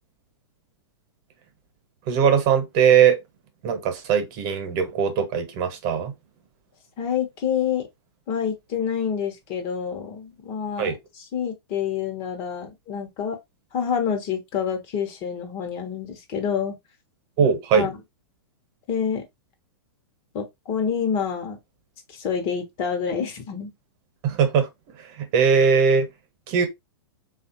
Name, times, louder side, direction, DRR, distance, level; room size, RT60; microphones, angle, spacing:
voice 1, 2.1-3.2 3.6-6.1 10.8-11.0 17.4-17.9 24.2-24.7 25.2-26.1 26.5-26.7, right 7 dB, 45° right, 1.0 m, -20 dB
voice 2, 7.0-7.9 8.3-13.4 13.7-16.7 17.7-17.9 18.9-19.2 20.3-21.6 22.1-23.7, left 7 dB, 40° left, 1.0 m, -27 dB
3.3 x 2.4 x 2.8 m
hypercardioid pair, 120°, 13 cm